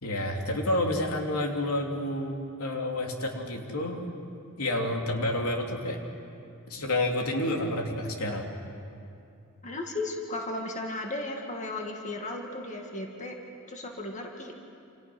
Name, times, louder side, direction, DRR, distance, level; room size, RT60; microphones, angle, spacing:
voice 1, 0.0-4.0 4.6-6.0 6.7-8.5, left 1 dB, 90° left, 1 dB, 3.1 m, -29 dB
voice 2, 9.6-13.4 13.7-14.5, left 2 dB, 35° left, 1 dB, 2.1 m, -35 dB
28.5 x 28.5 x 6.2 m, 2.6 s
head